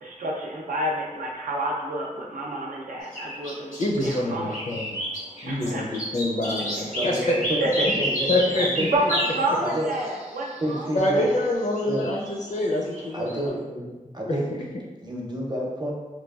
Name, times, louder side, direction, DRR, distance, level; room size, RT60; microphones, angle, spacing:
voice 1, 0.0-3.8 4.0-4.5 5.5-5.9 7.2-7.3 7.6-7.7 8.9-10.9 11.1-11.3, right 1 dB, 80° right, -2 dB, 0.5 m, -29 dB
Blackcap singing, 3.1-4.2 4.5-13.4, equal, 85° left, 1.0 m, -31 dB
voice 2, 3.8-5.0 5.4-7.3 7.9-8.0 8.3-8.9 10.9-14.4, left 1 dB, 60° left, -1 dB, 0.5 m, -26 dB
voice 3, 6.9-8.9 9.6-9.9 10.6-11.2 11.9-12.0 13.1-13.6 14.1-14.5 15.0-15.9, equal, 30° right, -3 dB, 0.6 m, -29 dB
3.0 x 2.3 x 2.3 m, 1.2 s
wide cardioid pair, 65°, 14 cm